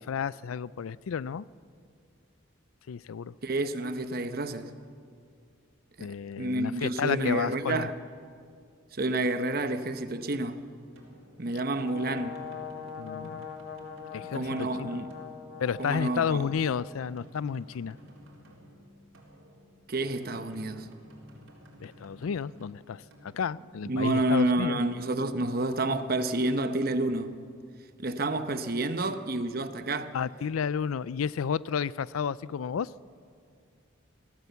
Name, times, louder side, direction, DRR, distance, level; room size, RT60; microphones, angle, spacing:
voice 1, 0.0-1.5 2.9-3.3 6.0-7.9 13.0-13.5 14.1-14.9 15.6-18.0 21.8-24.8 30.1-32.9, left 7 dB, 85° left, 0.4 m, -31 dB
voice 2, 3.4-4.7 6.0-6.1 6.4-7.9 8.9-10.7 11.4-12.5 14.2-15.1 15.8-16.5 19.9-20.9 23.9-27.4 28.0-30.2, right 2 dB, 45° right, 0.9 m, -29 dB
sound 1, 11.0-24.5, equal, 80° right, 3.8 m, -54 dB
Brass instrument, 11.7-16.9, left 7 dB, 50° left, 1.6 m, -42 dB
23.0 x 17.0 x 7.1 m
head